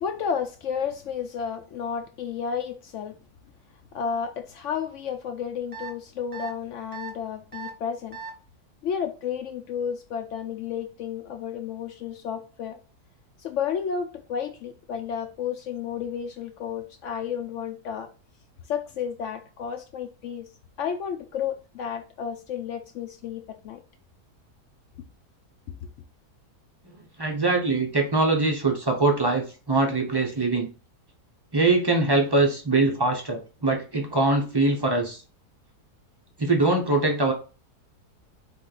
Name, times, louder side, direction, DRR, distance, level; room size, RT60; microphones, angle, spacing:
voice 1, 0.0-3.2 3.9-8.2 8.8-12.8 13.4-18.1 18.7-20.5 20.8-23.8, left 7 dB, 70° left, 0.7 m, -32 dB
sound 1, 5.7-5.9 6.3-6.5 6.9-7.1 7.5-7.7 8.1-8.3, right 5 dB, 10° right, 0.7 m, -37 dB
voice 2, 27.2-30.7 31.5-35.2 36.4-37.3, right 3 dB, 40° right, 0.3 m, -23 dB
4.4 x 3.1 x 3.9 m
omnidirectional pair, 1.7 m